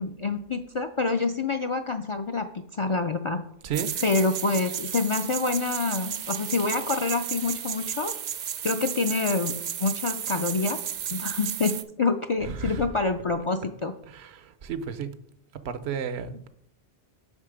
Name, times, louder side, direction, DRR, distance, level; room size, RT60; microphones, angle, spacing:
voice 1, 0.0-3.4 4.0-8.1 8.6-10.8 11.1-13.9, left 3 dB, 55° left, 0.3 m, -27 dB
voice 2, 3.6-3.9 12.4-12.8 14.1-15.1 15.6-16.5, right 7 dB, 85° right, 0.9 m, -33 dB
sound 1, 3.7-11.8, right 8 dB, 55° right, 0.6 m, -33 dB
7.2 x 5.8 x 4.9 m
omnidirectional pair, 1.0 m